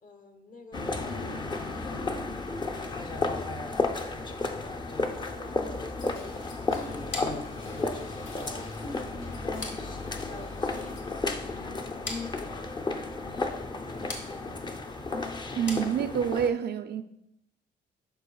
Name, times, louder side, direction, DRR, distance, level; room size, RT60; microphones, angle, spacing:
voice 1, 0.0-1.5 1.8-10.1 10.5-13.1 13.4-14.9, left 2 dB, 40° left, 1.1 m, -49 dB
sound 1, 0.7-16.5, left 3 dB, 20° left, 0.6 m, -33 dB
sound 2, 6.0-11.2 11.5-12.2, left 3 dB, 85° left, 1.1 m, -54 dB
sound 3, 7.1-16.5, left 3 dB, 65° left, 1.5 m, -44 dB
voice 2, 15.6-17.0, right 8 dB, 55° right, 0.4 m, -27 dB
11.5 x 4.7 x 2.3 m
cardioid pair, 90°, 20 cm